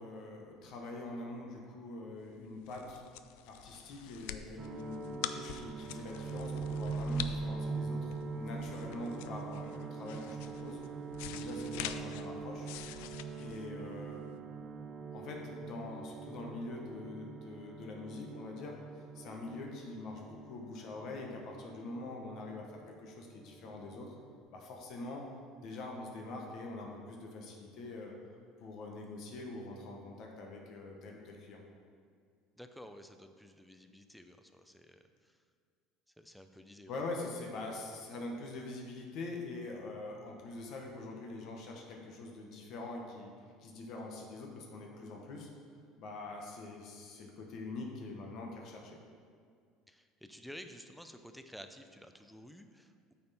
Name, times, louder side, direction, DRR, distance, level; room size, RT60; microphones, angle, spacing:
voice 1, 0.0-3.0 3.4-10.8 11.2-12.7 13.4-14.6 15.1-18.7 19.1-24.2 24.5-25.2 25.6-28.1 28.6-31.6 36.9-43.3 43.6-45.5 46.0-49.0, left 2 dB, 60° left, 1 dB, 1.2 m, -44 dB
sound 1, 2.3-14.3, left 11 dB, 80° left, 0.3 m, -45 dB
sound 2, 4.6-23.1 23.4-24.4, right 4 dB, 40° right, 0.9 m, -42 dB
voice 2, 32.6-35.4 36.2-37.0 49.9-53.1, equal, ahead, 7 dB, 0.5 m, -52 dB
8.4 x 4.3 x 4.3 m, 2.2 s
supercardioid pair, 100°, 0 cm